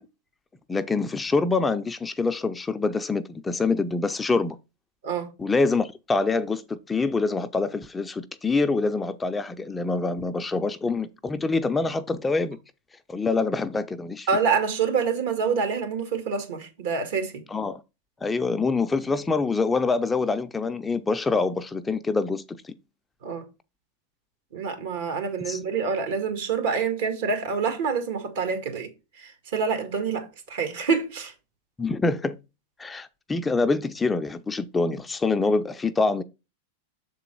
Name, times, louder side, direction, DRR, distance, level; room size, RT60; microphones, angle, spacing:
voice 1, 0.7-4.6 5.4-12.6 13.1-14.3 17.5-17.8 18.2-22.7 25.4-25.6 31.8-32.4 32.8-36.2, left 3 dB, 15° left, 0.4 m, -25 dB
voice 2, 14.3-17.4 23.2-23.5 24.5-28.9 29.2-31.3, right 5 dB, 70° right, 1.8 m, -27 dB
6.7 x 3.9 x 4.5 m
hypercardioid pair, 115°, 0 cm